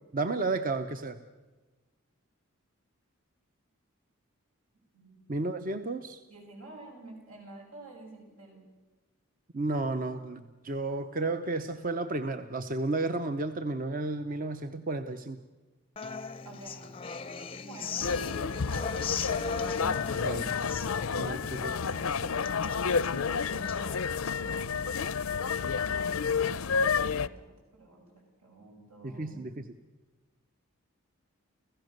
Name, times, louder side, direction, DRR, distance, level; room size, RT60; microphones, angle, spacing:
voice 1, 0.1-1.2 5.3-6.2 9.5-15.4 20.1-20.5 21.2-21.9 29.0-29.7, right 2 dB, 40° right, 9 dB, 0.7 m, -32 dB
voice 2, 4.9-5.5 6.3-8.7 16.4-16.9 17.5-19.7 21.4-21.5 23.0-25.0 26.8-29.6, right 2 dB, 80° right, 0 dB, 6.8 m, -49 dB
Human voice / Acoustic guitar, 16.0-23.9, left 5 dB, 25° left, 0.6 m, -39 dB
sound 1, 18.0-27.3, left 6 dB, 75° left, 0.6 m, -30 dB
30.0 x 15.5 x 6.6 m, 1.2 s
head